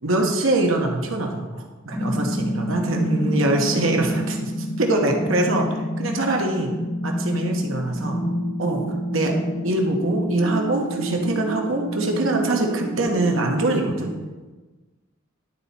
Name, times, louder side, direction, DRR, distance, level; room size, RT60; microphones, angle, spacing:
voice 1, 0.0-6.7 7.0-8.2 8.6-8.8 9.1-9.3 9.6-14.1, right 2 dB, 75° right, 2 dB, 1.2 m, -23 dB
sound 1, 1.9-13.7, equal, ahead, 2.3 m, -28 dB
11.0 x 4.1 x 4.3 m, 1.2 s
head